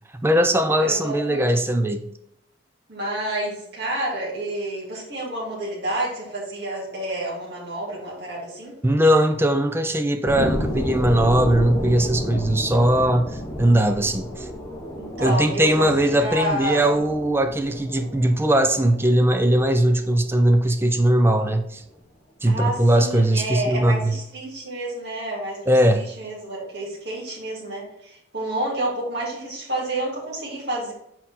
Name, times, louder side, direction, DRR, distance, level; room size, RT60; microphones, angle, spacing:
voice 1, 0.2-2.1 8.8-14.5 15.2-21.8 22.4-24.1 25.7-26.1, right 1 dB, 10° right, 7 dB, 0.5 m, -20 dB
voice 2, 0.7-1.6 2.9-8.7 15.0-17.0 22.5-30.9, right 1 dB, 55° right, -5 dB, 2.4 m, -29 dB
sound 1, 10.3-21.3 21.7-21.8, equal, 15° left, 1.0 m, -32 dB
6.1 x 4.4 x 4.2 m, 0.76 s
head